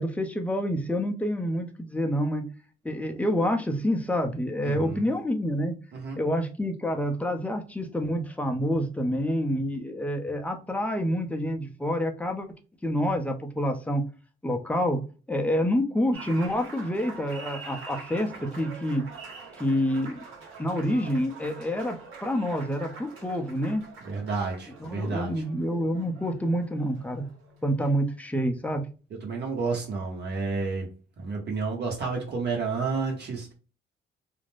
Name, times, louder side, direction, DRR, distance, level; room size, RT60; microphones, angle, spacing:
voice 1, 0.0-2.5 2.8-5.8 6.2-12.5 12.8-14.0 14.4-15.0 15.3-19.1 19.6-20.3 20.6-23.9 24.8-27.3 27.6-28.9, equal, 5° left, 0.6 m, -27 dB
voice 2, 4.6-5.1 5.9-6.2 24.0-25.3 29.2-30.9 31.2-33.5, right 4 dB, 60° right, 1.1 m, -30 dB
Applause, 16.1-27.9, right 4 dB, 85° right, 1.0 m, -45 dB
2.5 x 2.1 x 3.2 m
cardioid pair, 90°, 20 cm